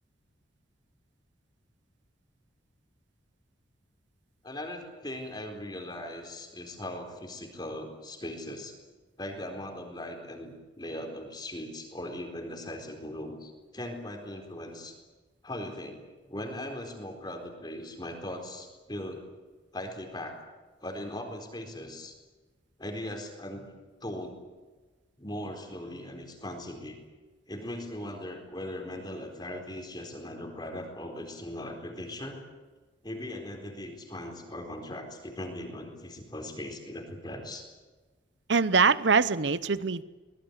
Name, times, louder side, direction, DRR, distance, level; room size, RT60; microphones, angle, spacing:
voice 1, 4.4-8.8 9.2-15.0 15.4-19.2 19.7-20.4 20.8-22.1 22.8-23.7 24.0-24.4 25.2-27.0 27.5-32.4 33.0-37.6, left 1 dB, 20° left, 3 dB, 4.2 m, -39 dB
voice 2, 38.5-40.0, right 5 dB, 70° right, 16 dB, 0.9 m, -23 dB
24.0 x 20.0 x 8.2 m, 1.3 s
head